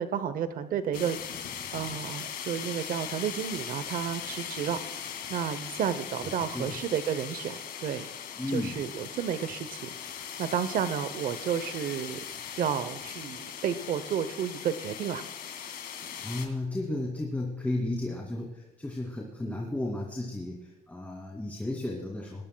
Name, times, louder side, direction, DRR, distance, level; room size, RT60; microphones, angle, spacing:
voice 1, 0.0-1.5 1.7-4.8 5.3-8.1 8.5-9.9 10.4-12.2 12.6-15.2, right 8 dB, 55° right, 12 dB, 0.8 m, -31 dB
sound 1, 0.9-16.5, left 8 dB, 60° left, 2.2 m, -39 dB
voice 2, 6.2-6.8 8.4-8.8 16.2-22.4, left 2 dB, 10° left, -2 dB, 2.4 m, -34 dB
19.5 x 19.0 x 2.3 m, 1.0 s
cardioid pair, 110°, 17 cm